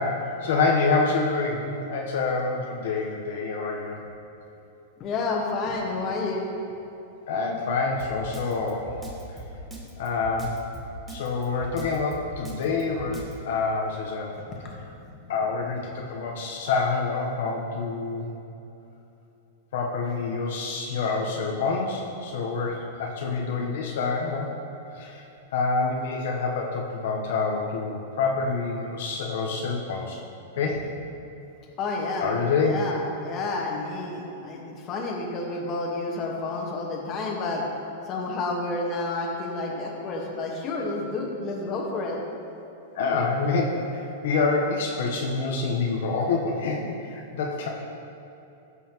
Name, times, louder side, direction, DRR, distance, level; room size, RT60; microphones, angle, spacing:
voice 1, 0.0-4.0 7.3-9.0 9.3-9.4 10.0-10.6 11.1-14.3 15.3-18.3 19.7-24.5 24.9-25.2 25.5-30.2 30.6-30.9 32.2-32.7 42.9-47.7, left 4 dB, 70° left, -1 dB, 0.9 m, -27 dB
voice 2, 5.0-6.5 14.5-14.8 31.8-32.3 32.6-37.6 38.1-42.2, left 3 dB, 30° left, -1 dB, 1.3 m, -30 dB
Drum kit, 8.0-13.3, right 2 dB, 10° right, 1.3 m, -40 dB
14.0 x 5.5 x 3.0 m, 2.9 s
supercardioid pair, 145°, 0 cm